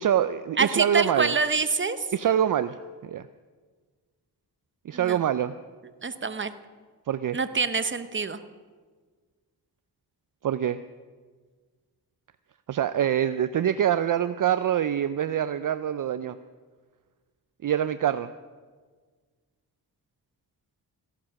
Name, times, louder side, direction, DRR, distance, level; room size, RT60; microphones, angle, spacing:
voice 1, 0.0-1.3 2.1-3.2 4.8-5.6 7.1-7.4 10.4-10.8 12.7-16.4 17.6-18.3, right 10 dB, 55° right, 13 dB, 0.5 m, -25 dB
voice 2, 0.6-2.1 4.9-5.2 6.0-6.6 7.3-8.4, right 4 dB, 30° right, 11 dB, 0.9 m, -26 dB
16.0 x 11.5 x 5.9 m, 1.5 s
cardioid pair, 70°, 40 cm